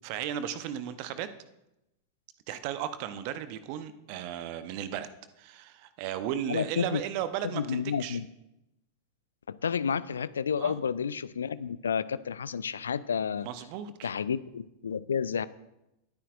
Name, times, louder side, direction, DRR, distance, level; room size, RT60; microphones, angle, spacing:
voice 1, 0.0-1.3 2.5-5.1 5.4-8.2 10.6-10.8 13.4-14.1, right 10 dB, 45° right, 12 dB, 0.8 m, -35 dB
voice 2, 6.5-7.0 7.5-8.3 9.5-13.5 14.0-15.4, left 7 dB, 70° left, 18 dB, 0.4 m, -30 dB
20.5 x 9.9 x 2.5 m, 0.89 s
figure-of-eight pair, 90°, 0 cm